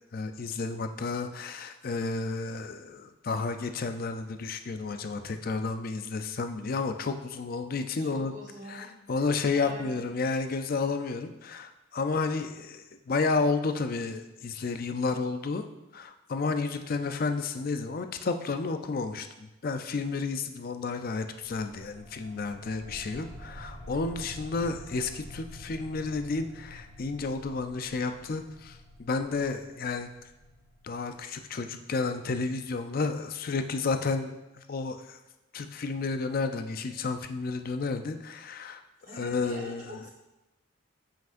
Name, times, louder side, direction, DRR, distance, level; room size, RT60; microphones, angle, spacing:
voice 1, 0.1-8.3 8.7-15.7 15.9-30.1 30.8-35.2 35.5-38.8 39.1-40.0, left 4 dB, 45° left, 8 dB, 0.4 m, -31 dB
voice 2, 8.0-8.9 9.5-10.1 39.0-40.1, equal, 35° right, -4 dB, 1.2 m, -44 dB
sound 1, 21.4-31.6, left 1 dB, 60° left, 2.2 m, -48 dB
7.6 x 5.8 x 2.5 m, 1.0 s
head